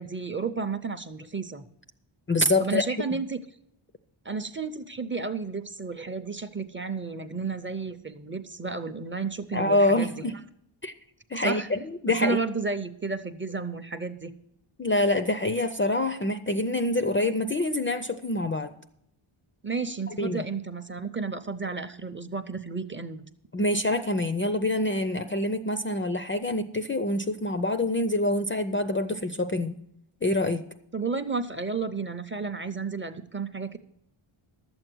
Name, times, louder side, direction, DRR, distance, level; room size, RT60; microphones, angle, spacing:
voice 1, 0.0-1.7 2.6-3.4 4.2-10.3 11.4-11.7 12.2-14.3 19.6-23.2 30.9-33.8, right 4 dB, 25° right, 9 dB, 0.5 m, -32 dB
voice 2, 2.3-2.8 9.5-10.4 10.8-10.9 11.3-12.4 14.8-18.7 20.2-20.5 23.5-29.8 30.2-30.6, left 1 dB, 25° left, 9 dB, 0.4 m, -26 dB
12.0 x 7.9 x 6.1 m, 0.75 s
wide cardioid pair, 175°, 50 cm